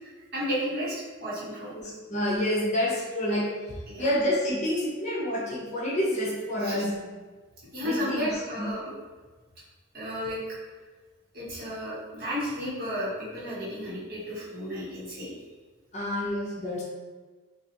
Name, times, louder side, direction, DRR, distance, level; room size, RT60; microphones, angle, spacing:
voice 1, 0.3-1.7 3.9-4.1 6.6-6.8 7.7-8.9 9.9-10.5 11.3-15.3, equal, 50° right, -8 dB, 1.3 m, -33 dB
voice 2, 1.7-3.5 4.0-7.0 7.8-8.3 8.6-8.7 15.9-16.8, left 1 dB, 35° left, -5 dB, 0.8 m, -28 dB
3.9 x 2.5 x 2.9 m, 1.3 s
head